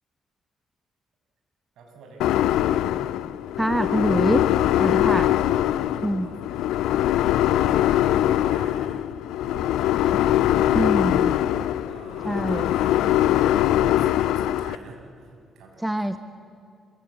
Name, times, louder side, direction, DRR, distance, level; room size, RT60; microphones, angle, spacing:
voice 1, 1.7-2.9 4.7-5.2 5.4-9.0 9.4-9.6 10.1-10.8 11.1-16.2, right 3 dB, 65° right, 1 dB, 6.8 m, -46 dB
sound 1, 2.2-14.8, left 12 dB, 65° left, 0.5 m, -22 dB
voice 2, 3.6-4.5 4.8-5.3 6.0-6.3 10.7-11.3 12.2-12.7 15.8-16.2, right 1 dB, 10° right, 10 dB, 1.3 m, -24 dB
26.0 x 24.0 x 8.5 m, 2.4 s
figure-of-eight pair, 45°, 0 cm